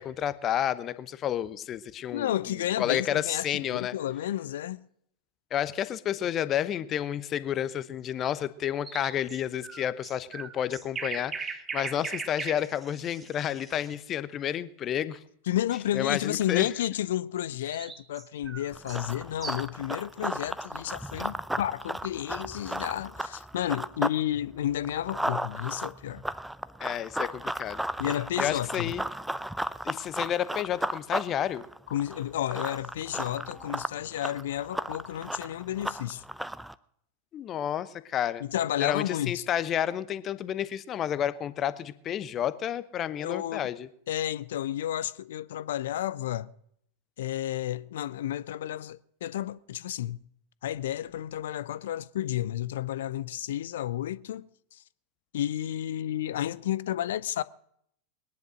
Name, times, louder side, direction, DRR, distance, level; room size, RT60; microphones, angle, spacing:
voice 1, 0.0-2.3 2.8-3.9 5.5-15.2 15.9-16.7 26.8-27.8 28.4-29.0 29.8-31.7 37.3-38.4 38.8-43.9, left 10 dB, 30° left, 0.9 m, -30 dB
voice 2, 2.1-4.8 15.5-26.2 28.0-28.9 31.9-36.2 38.4-39.5 43.2-43.7 44.1-46.5 47.2-50.2 50.6-54.8 55.3-57.4, left 12 dB, 60° left, 0.5 m, -31 dB
sound 1, 8.8-13.9 17.4-19.8, right 5 dB, 20° right, 1.3 m, -39 dB
Run, 18.7-24.2 24.5-36.7, right 1 dB, 5° right, 0.6 m, -35 dB
20.5 x 10.5 x 6.3 m
figure-of-eight pair, 90°, 0 cm